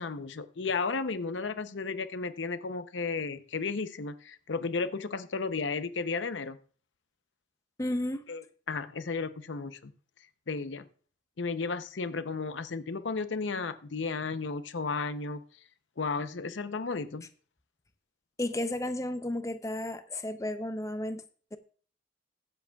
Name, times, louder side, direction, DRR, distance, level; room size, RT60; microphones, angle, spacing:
voice 1, 0.0-6.6 8.3-9.9 10.5-10.9 11.4-15.4 16.0-17.3, left 4 dB, 85° left, 0.7 m, -33 dB
voice 2, 7.8-8.2 18.4-21.2, left 1 dB, 15° left, 0.6 m, -33 dB
21.0 x 7.7 x 2.3 m
head